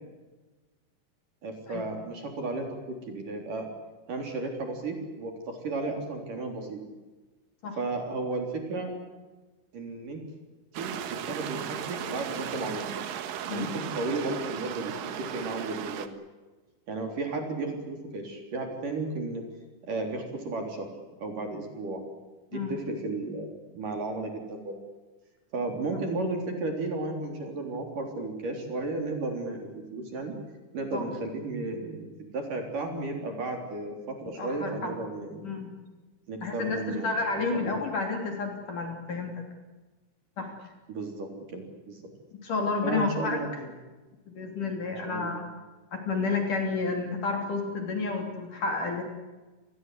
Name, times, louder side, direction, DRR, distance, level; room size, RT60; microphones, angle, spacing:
voice 1, 1.4-3.7 4.1-6.8 7.8-8.9 9.7-10.2 10.7-12.9 13.5-16.1 16.9-19.4 19.9-20.9 21.2-22.0 22.5-23.5 23.7-24.7 25.5-30.4 30.7-35.4 36.3-37.2 37.5-37.8 40.9-42.1 42.8-43.7 45.0-45.4, right 2 dB, 45° right, 4 dB, 4.9 m, -34 dB
sound 1, 10.7-16.1, right 9 dB, 65° right, 2.4 m, -36 dB
voice 2, 34.4-34.9 35.4-35.7 36.4-39.4 40.4-40.5 42.4-43.4 44.3-45.5 45.9-49.0, left 4 dB, 45° left, 3 dB, 4.2 m, -30 dB
28.5 x 21.0 x 8.3 m, 1.2 s
omnidirectional pair, 5.6 m